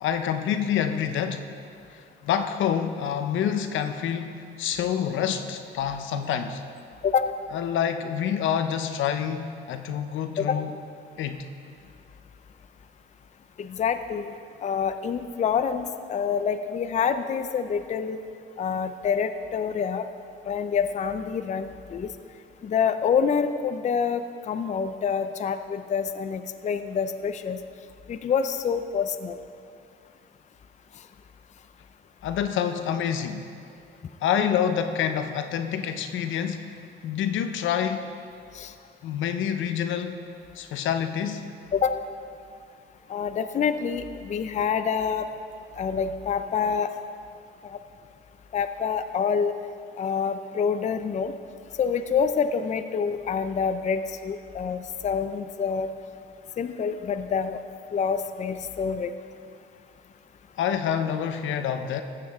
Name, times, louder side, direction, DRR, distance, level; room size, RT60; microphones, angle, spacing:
voice 1, 0.0-1.5 1.9-6.6 7.5-10.7 11.2-11.5 32.2-33.5 34.2-36.6 37.0-38.1 39.0-40.2 40.6-41.5 60.6-62.0, left 8 dB, 75° left, 8 dB, 0.7 m, -27 dB
voice 2, 13.6-14.3 14.6-18.2 18.6-20.0 20.5-22.1 22.6-27.6 28.1-29.4 38.6-38.7 41.7-42.0 43.1-45.2 45.8-46.9 48.5-49.5 50.0-51.3 51.8-55.9 56.6-57.6 57.9-59.1, left 6 dB, 35° left, 9 dB, 0.4 m, -27 dB
14.0 x 7.5 x 3.5 m, 2.4 s
cardioid pair, 90°, 20 cm